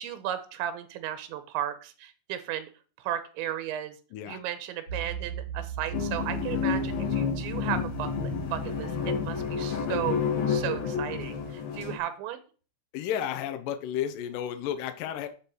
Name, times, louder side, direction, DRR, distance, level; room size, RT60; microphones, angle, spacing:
voice 1, 0.0-2.7 3.0-4.0 4.3-10.2 10.5-12.4, right 11 dB, 90° right, 10 dB, 3.2 m, -35 dB
voice 2, 4.1-4.4 12.9-15.3, left 10 dB, 85° left, 8 dB, 1.9 m, -32 dB
sound 1, 4.9-11.5, right 9 dB, 45° left, 1.5 m, -40 dB
sound 2, 5.9-12.0, left 7 dB, 60° left, 3.1 m, -30 dB
10.0 x 4.6 x 6.4 m, 0.39 s
omnidirectional pair, 5.2 m